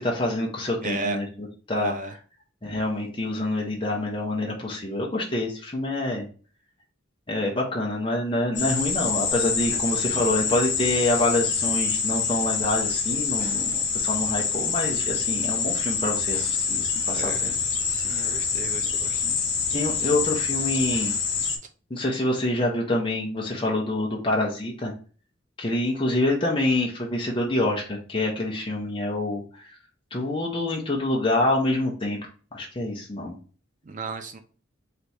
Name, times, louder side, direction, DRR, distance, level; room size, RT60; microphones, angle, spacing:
voice 1, 0.0-1.9 2.6-6.3 7.3-17.5 18.0-18.4 19.2-19.3 19.7-21.1 21.9-24.9 25.6-29.8 30.1-32.2 32.5-33.4, left 1 dB, 25° left, -2 dB, 0.8 m, -26 dB
voice 2, 0.8-1.2 1.7-2.1 9.7-9.8 17.1-17.6 17.9-19.5 33.8-34.4, right 3 dB, 40° right, 7 dB, 0.4 m, -34 dB
sound 1, 8.5-21.6, left 6 dB, 55° left, 1.0 m, -26 dB
3.3 x 3.0 x 4.1 m, 0.39 s
head